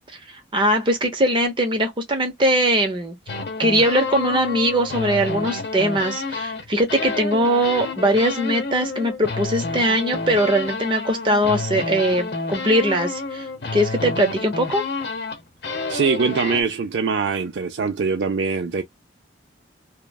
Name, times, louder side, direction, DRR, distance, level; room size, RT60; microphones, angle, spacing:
voice 1, 0.5-3.2 3.6-13.4 13.7-14.8, right 1 dB, 30° right, 0.8 m, -21 dB
sound 1, 3.3-6.6 6.9-16.6, left 3 dB, 65° left, 0.8 m, -29 dB
voice 2, 15.9-18.8, right 5 dB, 80° right, 0.4 m, -23 dB
3.1 x 2.1 x 2.2 m
head